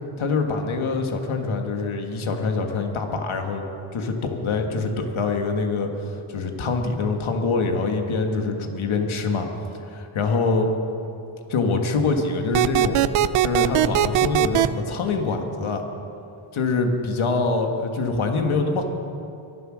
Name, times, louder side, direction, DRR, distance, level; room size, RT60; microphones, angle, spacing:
voice 1, 0.2-3.6 3.9-9.5 9.8-10.7 11.5-13.0 13.4-15.8 16.5-18.8, left 3 dB, 70° left, 4 dB, 1.7 m, -24 dB
sound 1, 12.5-14.7, right 13 dB, 80° right, 0.6 m, -19 dB
23.0 x 7.9 x 6.3 m, 2.8 s
cardioid pair, 85°, 50 cm